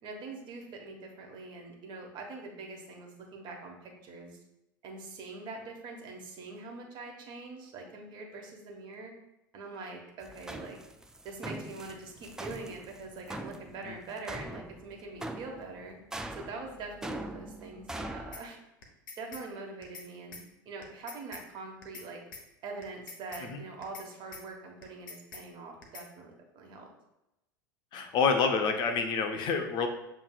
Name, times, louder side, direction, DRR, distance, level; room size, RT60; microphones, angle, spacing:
voice 1, 0.0-4.4 4.8-9.1 9.5-10.8 11.2-16.0 16.3-18.6 19.2-20.4 20.6-22.2 22.6-26.9, right 3 dB, 45° right, 1 dB, 1.2 m, -43 dB
sound 1, 10.2-18.4, right 1 dB, 5° right, 0.3 m, -42 dB
sound 2, 18.3-18.4 18.8-19.4 19.8-20.1 20.3-20.4 20.8-21.4 21.8-22.1 22.3-22.4 22.8-23.4 23.8-24.1 24.3-24.4 24.8-25.4 25.8-26.1, left 4 dB, 70° left, 0.9 m, -45 dB
voice 2, 27.9-29.9, left 5 dB, 45° left, 5 dB, 0.6 m, -27 dB
7.1 x 3.2 x 2.3 m, 0.90 s
figure-of-eight pair, 80°, 11 cm